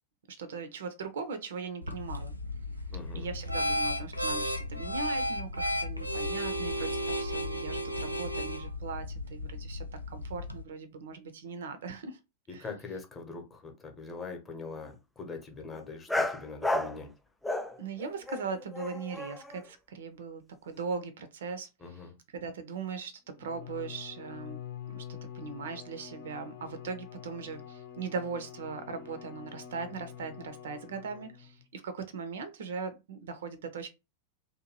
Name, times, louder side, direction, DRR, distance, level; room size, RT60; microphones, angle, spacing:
voice 1, 0.3-2.3 3.1-12.2 12.5-12.6 17.8-21.7 22.3-24.6 24.9-25.0 25.3-33.9, right 5 dB, 60° right, 0.4 m, -39 dB
sound 1, 1.8-10.6, equal, 90° left, 0.4 m, -34 dB
voice 2, 2.9-3.3 12.5-17.1 21.8-22.2, left 4 dB, 20° left, 0.8 m, -42 dB
sound 2, 16.1-17.0 17.4-19.6, left 1 dB, 5° left, 0.3 m, -32 dB
Bowed string instrument, 23.3-31.6, left 9 dB, 60° left, 0.7 m, -46 dB
2.6 x 2.2 x 3.0 m
figure-of-eight pair, 90°, 0 cm